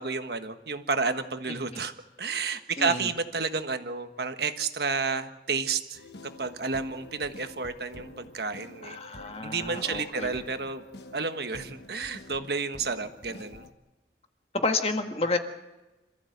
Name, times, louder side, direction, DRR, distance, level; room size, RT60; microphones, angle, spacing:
voice 1, 0.0-1.9 2.2-6.0 6.4-9.0 9.4-10.8 11.1-13.7, right 4 dB, 60° right, 8 dB, 1.5 m, -31 dB
voice 2, 2.8-3.1 8.8-10.4 13.3-13.5 14.5-15.4, left 3 dB, 35° left, 6 dB, 1.6 m, -30 dB
sound 1, 5.9-13.7, left 2 dB, 65° left, 1.3 m, -48 dB
27.0 x 14.5 x 8.0 m, 1.1 s
head